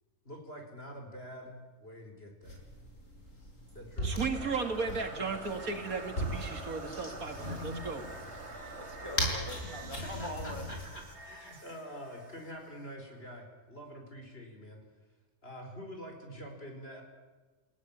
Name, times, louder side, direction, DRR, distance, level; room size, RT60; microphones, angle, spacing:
voice 1, 0.2-2.6 3.7-4.2 10.0-14.8 15.4-17.0, equal, 40° left, 5.0 m, -46 dB
sound 1, 2.4-11.0, equal, 60° left, 6.7 m, -39 dB
voice 2, 4.0-8.1, right 4 dB, 70° right, 2.6 m, -35 dB
sound 2, 4.3-13.4, right 2 dB, 45° right, 2.9 m, -47 dB
voice 3, 8.8-10.7, equal, 20° right, 4.3 m, -43 dB
29.5 x 16.5 x 8.8 m
omnidirectional pair, 1.5 m